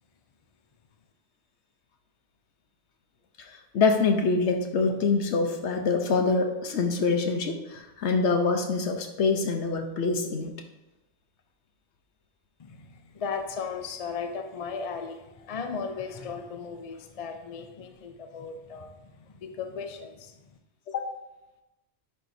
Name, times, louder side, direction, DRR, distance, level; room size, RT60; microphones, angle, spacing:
voice 1, 3.5-10.5 20.9-21.1, left 4 dB, 70° left, 5 dB, 1.0 m, -25 dB
voice 2, 12.6-20.6, left 5 dB, 45° left, 6 dB, 0.5 m, -36 dB
10.0 x 4.7 x 2.7 m, 0.98 s
omnidirectional pair, 1.2 m